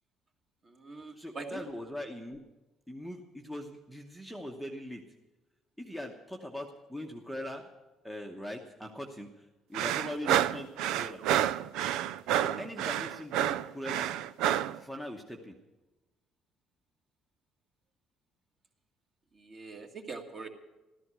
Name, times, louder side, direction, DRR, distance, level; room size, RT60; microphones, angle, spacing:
voice 1, 0.6-1.6 19.3-20.5, right 4 dB, 30° right, 4 dB, 1.8 m, -43 dB
voice 2, 1.1-2.4 2.9-5.0 5.8-7.7 8.0-10.7 11.0-11.2 12.4-14.1 14.7-15.5, left 1 dB, ahead, 0 dB, 1.0 m, -41 dB
sound 1, 9.7-14.8, right 11 dB, 80° right, 0.5 m, -29 dB
14.5 x 13.5 x 6.2 m, 1.1 s
cardioid pair, 170°, 0 cm